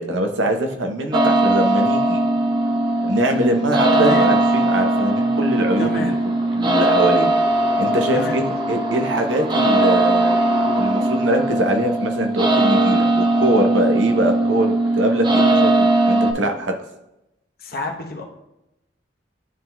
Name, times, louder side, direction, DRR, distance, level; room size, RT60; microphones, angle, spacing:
voice 1, 0.0-2.2 3.0-6.2 6.6-7.3 7.8-10.4 10.8-16.7, right 1 dB, 90° right, 4 dB, 0.8 m, -22 dB
sound 1, 1.1-16.3, right 1 dB, 25° right, 0.6 m, -19 dB
voice 2, 3.9-4.3 5.8-6.1 8.1-8.4 17.6-18.2, left 2 dB, 50° left, 2 dB, 0.9 m, -29 dB
11.0 x 3.8 x 2.3 m, 0.91 s
head